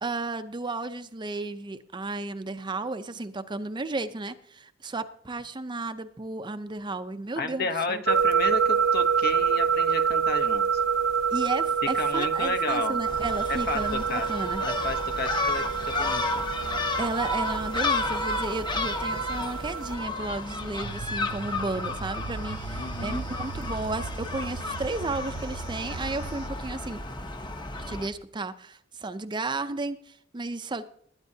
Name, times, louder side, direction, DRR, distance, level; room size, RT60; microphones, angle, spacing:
voice 1, 0.0-8.0 11.3-14.6 17.0-27.0 27.8-30.8, right 2 dB, 25° right, 10 dB, 0.6 m, -33 dB
voice 2, 7.4-10.8 11.9-13.0 13.5-14.3 14.6-16.2 22.8-23.3, left 3 dB, 55° left, 7 dB, 1.0 m, -32 dB
sound 1, 8.1-19.9, right 6 dB, 90° right, 1.2 m, -27 dB
Gull seagull, 13.1-28.1, left 2 dB, 25° left, 0.9 m, -32 dB
sound 2, 20.8-26.5, right 5 dB, 70° right, 0.6 m, -39 dB
20.5 x 9.8 x 2.8 m, 0.66 s
head